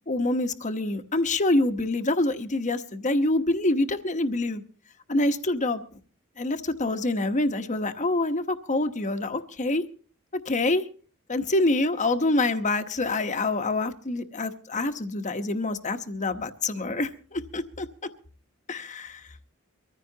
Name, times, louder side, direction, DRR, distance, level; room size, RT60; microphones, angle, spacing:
voice 1, 0.1-4.6 5.1-5.8 6.4-9.8 10.5-10.8 11.3-17.9 18.7-19.2, left 2 dB, 35° left, 8 dB, 1.1 m, -26 dB
23.5 x 15.0 x 2.8 m, 0.41 s
head